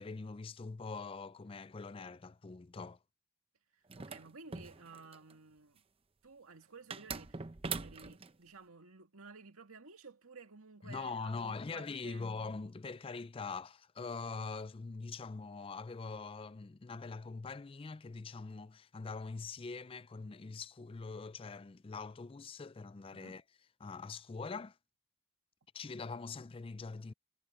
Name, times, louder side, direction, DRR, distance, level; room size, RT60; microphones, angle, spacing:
voice 1, 0.0-3.0 10.8-23.4 23.8-24.8 25.7-27.1, left 4 dB, 25° left, 0.4 m, -43 dB
voice 2, 3.7-5.8 6.2-7.5 7.8-12.4 23.1-23.3, right 4 dB, 85° right, 2.1 m, -54 dB
sound 1, 3.9-5.3 6.9-8.3, right 5 dB, 25° right, 0.7 m, -42 dB
head